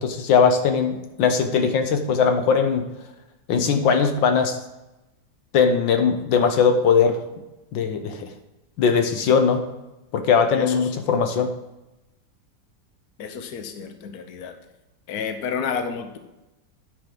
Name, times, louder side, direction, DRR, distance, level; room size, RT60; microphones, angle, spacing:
voice 1, 0.0-2.8 3.5-4.6 5.5-7.2 7.7-8.3 8.8-9.6 10.1-11.5, left 6 dB, 85° left, 6 dB, 1.7 m, -20 dB
voice 2, 10.5-10.9 13.2-14.6 15.1-16.2, left 6 dB, 60° left, 7 dB, 1.3 m, -30 dB
9.6 x 5.1 x 7.6 m, 0.97 s
omnidirectional pair, 2.0 m